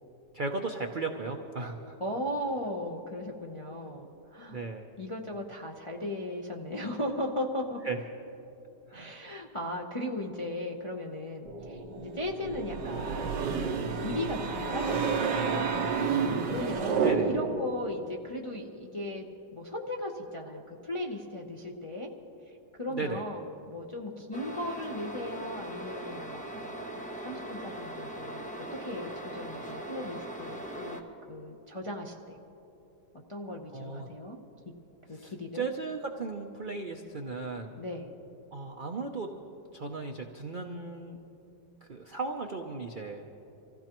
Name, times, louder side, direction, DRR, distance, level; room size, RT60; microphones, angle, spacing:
voice 1, 0.3-1.9 4.5-4.9 7.8-8.0 8.9-9.1 17.0-17.3 22.9-23.2 33.7-34.1 35.1-37.8 38.5-39.3 39.7-41.2 41.9-43.2, right 4 dB, 65° right, 3 dB, 0.4 m, -36 dB
voice 2, 2.0-4.6 5.0-7.8 8.9-15.7 16.2-19.2 19.5-22.1 22.8-32.4 33.3-34.4 35.1-35.7 37.8-38.2, left 1 dB, 35° left, -1 dB, 0.4 m, -37 dB
sound 1, 11.4-17.1, right 1 dB, 25° right, 2.4 m, -43 dB
sound 2, 12.4-17.7, right 5 dB, 85° right, 1.5 m, -29 dB
sound 3, 24.3-31.0, right 1 dB, 5° left, 0.8 m, -40 dB
25.0 x 15.5 x 3.0 m, 2.9 s
omnidirectional pair, 1.8 m